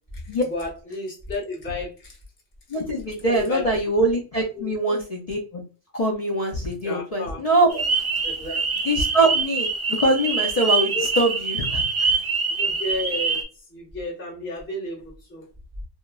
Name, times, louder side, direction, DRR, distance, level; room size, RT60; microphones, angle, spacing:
voice 1, 0.5-2.2 3.2-3.6 4.6-5.0 6.8-7.4 8.2-8.6 10.9-11.1 12.6-13.4 13.7-15.5, left 1 dB, 15° left, -4 dB, 0.6 m, -32 dB
voice 2, 2.7-5.6 5.9-7.9 8.8-9.7 10.0-12.2, right 1 dB, 60° left, -2 dB, 0.4 m, -23 dB
sound 1, 7.7-13.4, right 4 dB, 40° right, 0.4 m, -25 dB
3.0 x 2.2 x 2.2 m, 0.36 s
omnidirectional pair, 1.2 m